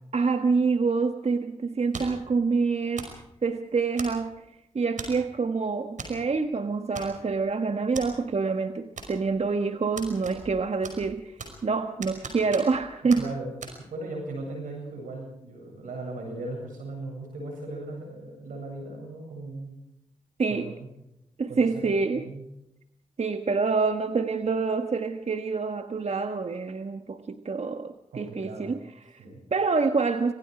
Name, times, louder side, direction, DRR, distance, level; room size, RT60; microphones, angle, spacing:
voice 1, 0.1-4.4 4.7-13.3 20.4-20.7 21.4-22.3 23.2-29.2 29.5-30.3, right 4 dB, 55° right, 8 dB, 1.3 m, -27 dB
sound 1, 1.9-2.3 3.0-3.2 4.0-4.4 5.0-5.3 6.0-6.2 6.4-6.5 6.9-7.4 7.9-8.1 9.0-9.4 10.0-10.6 10.8-11.7 12.0-12.8 13.1-13.2 13.6-13.7, right 4 dB, 70° right, 5.5 m, -39 dB
voice 2, 13.1-13.5 13.9-19.7 20.5-20.9 21.5-22.4 28.1-28.8 29.2-29.4, right 2 dB, 90° right, 1 dB, 7.7 m, -38 dB
26.5 x 19.5 x 5.0 m, 0.84 s
supercardioid pair, 40°, 13 cm